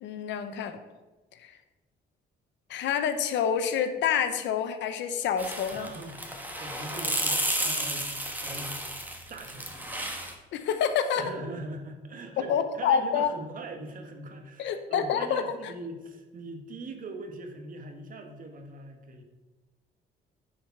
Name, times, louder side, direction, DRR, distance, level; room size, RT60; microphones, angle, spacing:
voice 1, 0.0-0.8 1.4-1.5 2.7-5.9 10.5-11.2 12.4-13.3 14.6-15.4, left 8 dB, 90° left, 9 dB, 0.9 m, -27 dB
sound 1, 5.4-10.3, right 1 dB, 10° right, 1.3 m, -32 dB
voice 2, 5.7-8.1 8.4-8.8 9.3-9.7 11.2-19.2, right 2 dB, 50° right, 5 dB, 1.4 m, -41 dB
9.9 x 5.0 x 5.9 m, 1.2 s
cardioid pair, 115°, 18 cm